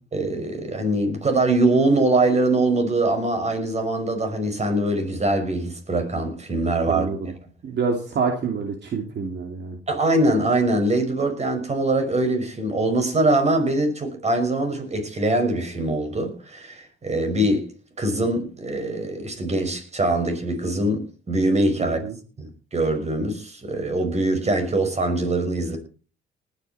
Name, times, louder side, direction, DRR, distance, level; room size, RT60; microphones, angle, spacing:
voice 1, 0.1-7.1 9.9-17.7 18.0-22.0 22.4-25.8, right 2 dB, 35° right, 5.7 m, -23 dB
voice 2, 6.9-7.3 7.6-9.8 21.8-22.1, right 5 dB, 60° right, 2.9 m, -27 dB
19.0 x 10.5 x 4.3 m
cardioid pair, 90°, 20 cm